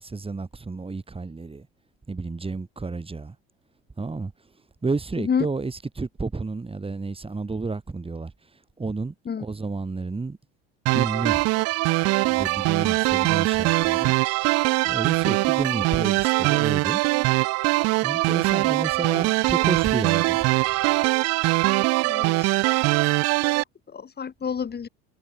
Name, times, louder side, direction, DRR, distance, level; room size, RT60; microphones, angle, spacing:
voice 1, 0.0-1.7 2.1-3.4 4.0-4.3 4.8-10.4 10.9-11.4 12.2-14.1 14.8-17.0 18.0-20.5, right 3 dB, 15° right, 5.3 m, -31 dB
sound 1, 10.9-23.6, right 23 dB, 55° right, 0.5 m, -22 dB
voice 2, 22.1-22.6 23.9-24.9, left 6 dB, 30° left, 3.8 m, -28 dB
hypercardioid pair, 80°, 32 cm